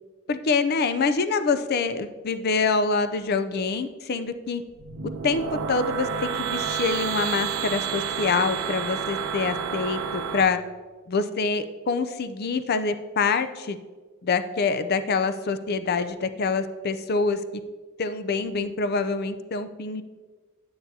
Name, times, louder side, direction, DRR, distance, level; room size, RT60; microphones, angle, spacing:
voice 1, 0.3-4.6 5.2-5.4 5.7-10.6 11.1-13.8 14.2-17.4 18.0-20.0, left 4 dB, 45° left, 11 dB, 0.4 m, -25 dB
sound 1, 4.7-10.4, right 7 dB, 75° right, 0.6 m, -30 dB
9.3 x 8.6 x 2.7 m, 1.4 s
head